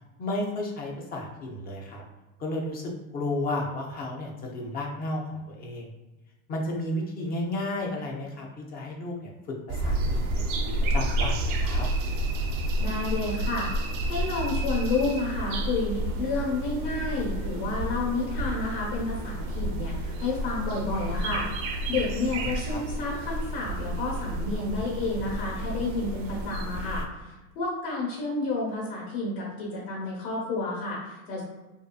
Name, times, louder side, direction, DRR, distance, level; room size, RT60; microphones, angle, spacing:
voice 1, 0.2-2.0 2.4-5.9 6.5-9.3 9.7-11.9 22.5-22.8, left 1 dB, 25° left, 0 dB, 0.3 m, -33 dB
sound 1, 9.7-27.0, right 1 dB, 55° right, 0.5 m, -30 dB
voice 2, 12.8-13.7 14.1-21.5 21.9-31.4, left 3 dB, 75° left, -6 dB, 1.1 m, -30 dB
2.6 x 2.2 x 2.3 m, 1.1 s
supercardioid pair, 115°, 42 cm